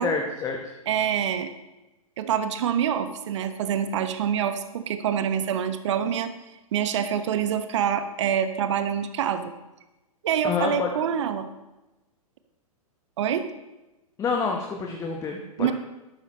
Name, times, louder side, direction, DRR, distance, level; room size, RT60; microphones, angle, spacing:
voice 1, 0.0-0.7 10.4-10.9 14.2-15.7, left 5 dB, 15° left, 1 dB, 1.2 m, -28 dB
voice 2, 0.9-1.5 2.2-6.3 6.7-9.5 10.2-11.5 13.2-13.4 15.6-15.7, right 8 dB, 50° right, 11 dB, 1.0 m, -26 dB
12.5 x 12.0 x 3.1 m, 1.0 s
figure-of-eight pair, 110°, 19 cm